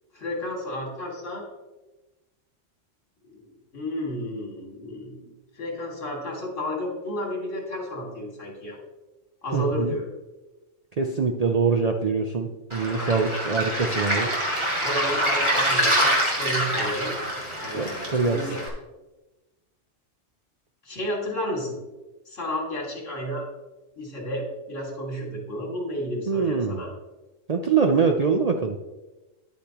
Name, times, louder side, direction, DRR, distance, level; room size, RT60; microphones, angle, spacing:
voice 1, 0.1-1.4 3.3-3.5 3.7-8.8 9.4-10.1 12.9-13.3 14.8-17.1 17.6-18.6 20.8-21.8 22.3-23.5 24.0-26.9, equal, 70° left, -1 dB, 2.8 m, -32 dB
voice 2, 9.5-9.9 11.0-14.3 17.7-18.4 26.3-26.8 27.5-28.7, right 5 dB, 50° right, 3 dB, 0.5 m, -24 dB
Waves surf, 12.7-18.7, equal, 25° right, 1.8 m, -25 dB
10.5 x 8.2 x 2.9 m, 1.1 s
omnidirectional pair, 1.3 m